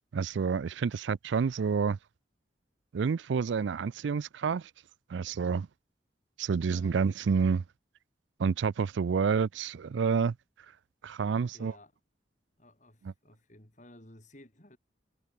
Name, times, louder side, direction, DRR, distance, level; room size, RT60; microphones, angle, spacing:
voice 1, 0.1-2.0 2.9-4.7 5.1-5.7 6.4-7.6 8.4-10.3 11.0-11.7 13.0-13.1, right 5 dB, 75° right, 0.4 m, -29 dB
voice 2, 6.7-7.0 11.5-11.9 12.6-14.8, left 1 dB, 40° left, 4.3 m, -55 dB
head